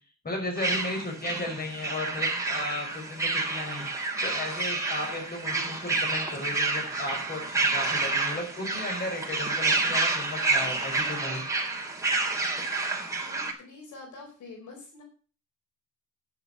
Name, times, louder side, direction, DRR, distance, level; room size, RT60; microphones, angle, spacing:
voice 1, 0.2-3.9 4.2-11.4, left 2 dB, 30° left, 1 dB, 5.5 m, -35 dB
sound 1, 0.6-13.5, right 3 dB, 10° right, 2.9 m, -29 dB
voice 2, 13.2-15.0, left 3 dB, 75° left, 1 dB, 4.4 m, -46 dB
10.5 x 7.1 x 6.7 m, 0.40 s
cardioid pair, 95°, 30 cm